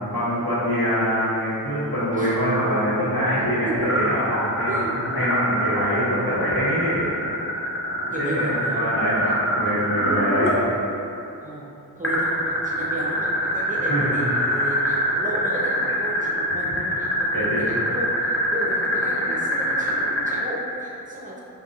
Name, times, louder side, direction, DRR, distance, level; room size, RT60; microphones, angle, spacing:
voice 1, 0.1-7.1 8.1-10.5 13.9-14.2 16.5-16.6 17.3-17.7, equal, 75° left, -12 dB, 1.4 m, -24 dB
sound 1, 3.8-10.6 12.0-20.3, equal, 35° left, 0.7 m, -24 dB
voice 2, 8.1-8.9 9.2-9.3 11.4-21.4, right 1 dB, 20° right, -5 dB, 0.6 m, -33 dB
3.8 x 2.6 x 2.7 m, 2.7 s
wide cardioid pair, 50°, 37 cm